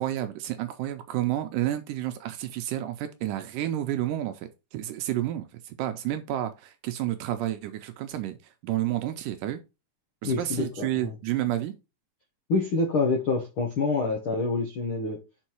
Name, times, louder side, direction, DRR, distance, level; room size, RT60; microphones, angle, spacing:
voice 1, 0.0-8.4 8.6-9.6 10.2-11.7, right 13 dB, 80° right, 2.0 m, -30 dB
voice 2, 10.2-11.1 12.5-15.2, left 3 dB, 85° left, 1.1 m, -27 dB
5.4 x 4.7 x 4.4 m
omnidirectional pair, 4.1 m